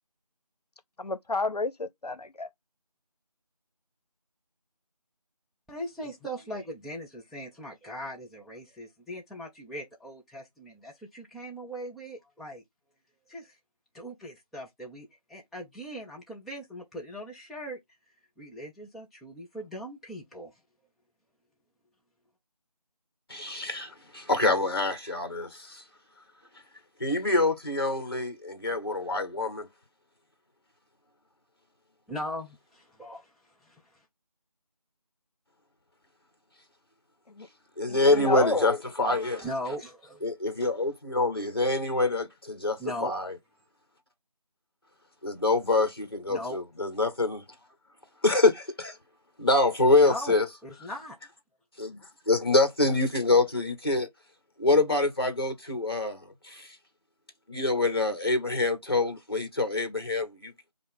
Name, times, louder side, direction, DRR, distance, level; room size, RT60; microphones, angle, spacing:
voice 1, 1.0-2.5 37.4-37.5 37.9-38.8, left 3 dB, 75° left, 0.6 m, -30 dB
voice 2, 5.7-12.6 13.3-13.6 13.9-17.8 18.4-20.6 32.1-34.1 39.4-40.2 42.8-43.1 46.3-46.6 50.0-50.4 50.6-51.2, equal, ahead, 0.4 m, -39 dB
voice 3, 23.3-25.8 27.0-29.7 37.8-39.5 40.2-43.3 45.2-47.4 48.2-49.0 49.4-50.5 51.8-52.0 52.3-54.1 54.6-56.8 57.5-60.5, left 2 dB, 35° left, 1.0 m, -25 dB
5.3 x 2.0 x 3.5 m
figure-of-eight pair, 175°, 20 cm